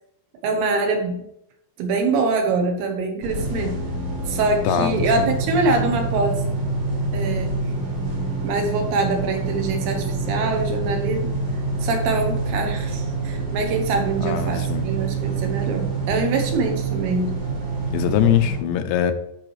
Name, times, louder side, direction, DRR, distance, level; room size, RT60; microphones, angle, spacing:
voice 1, 0.4-1.3 1.8-3.8 4.3-6.4 7.1-7.6 8.4-11.3 11.8-17.4, right 3 dB, 75° right, 3 dB, 2.7 m, -24 dB
sound 1, 3.2-18.6, right 3 dB, 45° right, 1.9 m, -26 dB
voice 2, 4.6-5.3 14.2-14.9 17.9-19.1, left 10 dB, 85° left, 8 dB, 2.9 m, -22 dB
12.5 x 4.8 x 3.2 m, 0.79 s
omnidirectional pair, 5.1 m